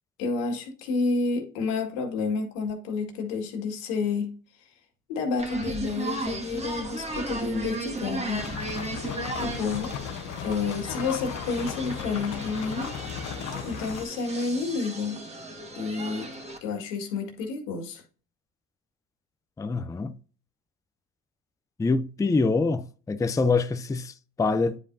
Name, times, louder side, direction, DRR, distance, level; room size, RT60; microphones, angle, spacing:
voice 1, 0.2-4.4 5.1-8.5 9.4-9.9 10.4-12.9 13.6-15.2 15.8-16.3 16.6-18.0, left 4 dB, 85° left, 2.0 m, -30 dB
sound 1, 5.4-16.6, right 2 dB, 20° right, 1.7 m, -36 dB
sound 2, 8.3-14.0, left 9 dB, 55° left, 1.1 m, -36 dB
voice 2, 19.6-20.2 21.8-24.8, left 3 dB, 10° left, 0.5 m, -25 dB
9.6 x 5.1 x 2.6 m
supercardioid pair, 80°, 35 cm